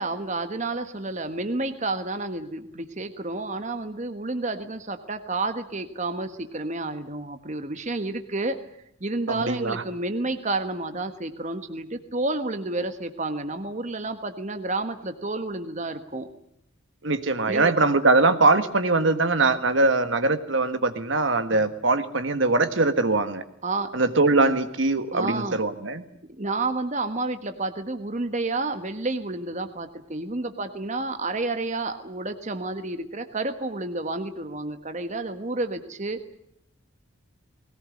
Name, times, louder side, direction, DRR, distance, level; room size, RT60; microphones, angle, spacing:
voice 1, 0.0-8.6 9.0-16.3 17.5-17.7 21.5-21.7 23.6-23.9 25.1-25.6 26.4-36.4, right 2 dB, 35° right, 8 dB, 1.5 m, -30 dB
voice 2, 9.3-9.8 17.0-23.4 23.9-26.0, right 3 dB, 65° right, 10 dB, 1.6 m, -22 dB
21.0 x 18.5 x 9.7 m, 0.75 s
head